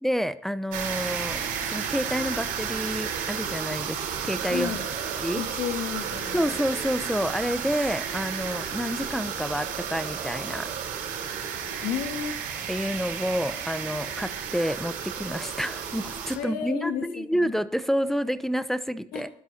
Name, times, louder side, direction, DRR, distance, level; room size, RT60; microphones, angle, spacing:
voice 1, 0.0-4.8 5.2-5.4 6.3-10.7 12.7-19.3, equal, ahead, 12 dB, 0.9 m, -29 dB
sound 1, 0.7-16.4, right 7 dB, 85° right, 4.1 m, -32 dB
voice 2, 4.5-5.0 5.3-6.6 11.8-12.3 16.3-17.6 19.1-19.3, left 8 dB, 85° left, 5 dB, 2.4 m, -32 dB
20.5 x 12.0 x 2.9 m, 0.69 s
supercardioid pair, 80°, 14 cm